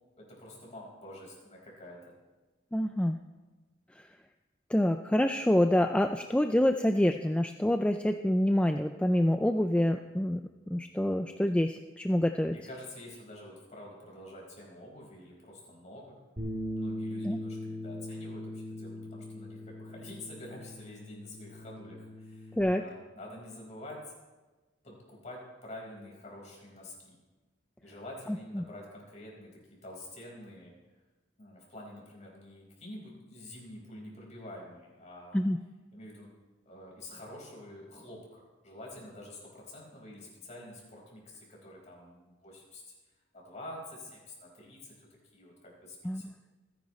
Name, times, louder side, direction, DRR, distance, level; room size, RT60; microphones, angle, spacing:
voice 1, 0.2-2.1 12.4-16.1 16.7-24.0 24.8-27.2 27.8-29.5 29.8-30.7 31.4-35.4 35.9-36.3 36.6-42.8 43.3-45.1 45.3-46.3, left 1 dB, 40° left, -3 dB, 4.9 m, -47 dB
voice 2, 2.7-3.2 4.0-4.1 4.7-10.4 10.7-12.6 17.2-17.4 22.6-22.8 28.3-28.6 35.3-35.6 46.0-46.3, left 1 dB, 5° left, 6 dB, 0.3 m, -27 dB
Bass guitar, 16.4-22.6, left 1 dB, 40° right, 3.7 m, -40 dB
27.0 x 10.5 x 3.2 m, 1.2 s
head